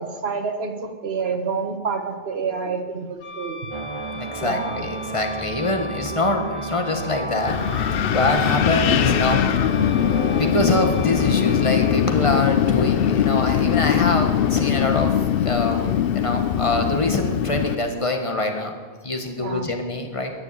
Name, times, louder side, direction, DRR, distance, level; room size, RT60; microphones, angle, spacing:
voice 1, 0.0-3.6 4.4-4.8 8.5-8.6 19.4-19.7, right 5 dB, 70° right, 6 dB, 1.4 m, -28 dB
Wind instrument woodwind instrument, 3.2-12.0, left 1 dB, 80° left, 2.0 m, -37 dB
sound 1, 3.7-16.8, right 4 dB, 35° right, 0.6 m, -34 dB
voice 2, 4.1-7.6 8.1-9.4 10.4-18.7 19.0-20.3, left 2 dB, 30° left, 4 dB, 1.6 m, -24 dB
Wind, 7.5-17.7, left 10 dB, 65° left, 0.7 m, -21 dB
14.0 x 6.8 x 9.8 m, 1.5 s
omnidirectional pair, 1.1 m